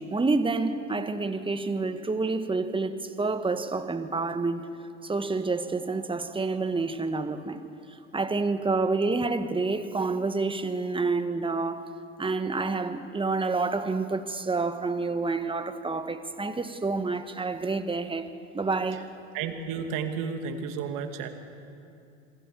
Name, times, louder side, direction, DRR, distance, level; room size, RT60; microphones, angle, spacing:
voice 1, 0.0-4.7 5.0-7.6 7.9-11.8 12.2-19.1, right 3 dB, 15° right, 1.6 m, -28 dB
voice 2, 19.3-21.3, right 6 dB, 55° right, 2.4 m, -32 dB
27.0 x 20.0 x 7.0 m
hypercardioid pair, 70°, 39 cm